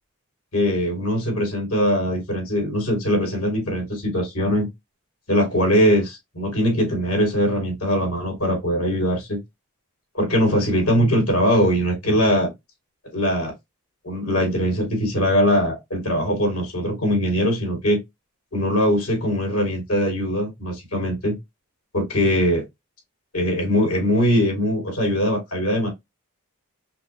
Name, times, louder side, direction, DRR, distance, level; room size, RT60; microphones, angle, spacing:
voice 1, 0.5-4.7 5.3-9.4 10.1-12.5 13.1-13.5 14.0-18.0 18.5-21.3 21.9-22.6 23.3-25.9, equal, 85° left, 2.6 m, -21 dB
5.7 x 2.1 x 2.9 m
head